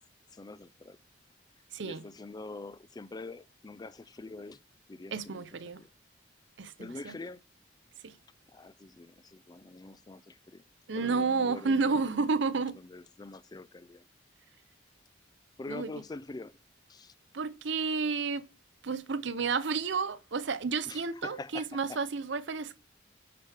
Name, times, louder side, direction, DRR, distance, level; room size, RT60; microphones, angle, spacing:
voice 1, 0.3-1.0 1.8-4.6 4.9-5.5 5.8-5.9 6.8-7.4 8.5-10.6 10.9-12.1 12.7-14.1 15.6-16.6 16.9-17.1 20.9-22.0, left 2 dB, 20° left, 0.3 m, -45 dB
voice 2, 1.7-2.0 5.1-5.8 6.6-7.1 8.0-8.1 10.9-12.8 15.7-15.9 17.3-18.5 18.8-22.8, right 4 dB, 65° right, 0.6 m, -31 dB
12.0 x 4.9 x 3.4 m
head